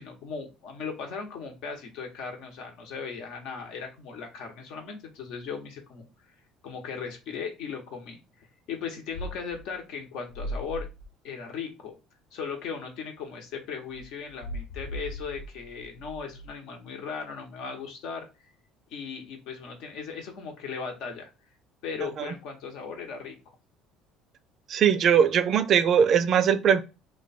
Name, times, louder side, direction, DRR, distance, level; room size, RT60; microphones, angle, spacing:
voice 1, 0.0-6.1 6.6-8.2 8.7-10.9 11.2-11.9 12.3-18.3 18.9-21.3 21.8-23.4, left 6 dB, 70° left, 0.9 m, -37 dB
sound 1, 9.1-9.7 10.3-11.0 13.9-16.5, equal, 90° left, 0.5 m, -38 dB
voice 2, 24.7-26.8, right 8 dB, 45° right, 0.3 m, -20 dB
3.1 x 2.2 x 4.0 m
cardioid pair, 125°, 0 cm